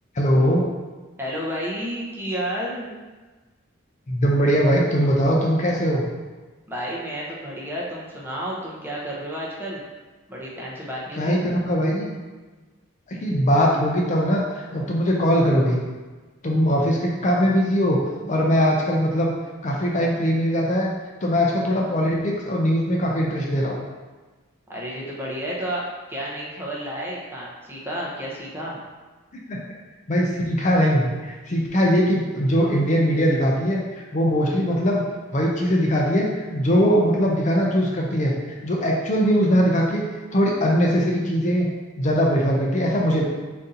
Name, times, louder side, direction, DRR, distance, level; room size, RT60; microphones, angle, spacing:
voice 1, 0.1-0.7 4.1-6.1 11.2-12.2 13.1-15.8 16.4-18.0 18.3-19.3 19.6-20.9 21.2-23.8 29.5-29.6 30.1-35.0 35.3-40.0 40.3-41.7 42.0-43.2, equal, 35° left, -2 dB, 0.5 m, -21 dB
voice 2, 1.2-2.9 6.7-9.9 10.3-11.4 24.7-28.8, equal, 10° right, -5 dB, 0.7 m, -31 dB
4.0 x 2.7 x 3.8 m, 1.3 s
head